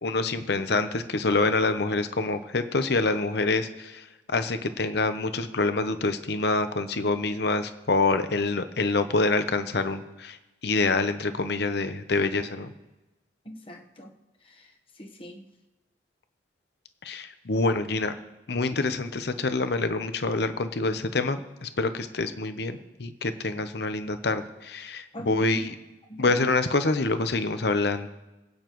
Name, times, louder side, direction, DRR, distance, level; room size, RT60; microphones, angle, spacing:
voice 1, 0.0-10.4 10.6-12.7 17.0-18.1 18.5-25.7 26.2-28.1, left 3 dB, 65° left, 10 dB, 0.8 m, -26 dB
voice 2, 13.4-14.1 14.4-14.7 15.0-15.5 25.1-25.6 26.1-26.4, equal, 30° left, 3 dB, 1.2 m, -41 dB
24.5 x 9.0 x 3.1 m, 1.0 s
head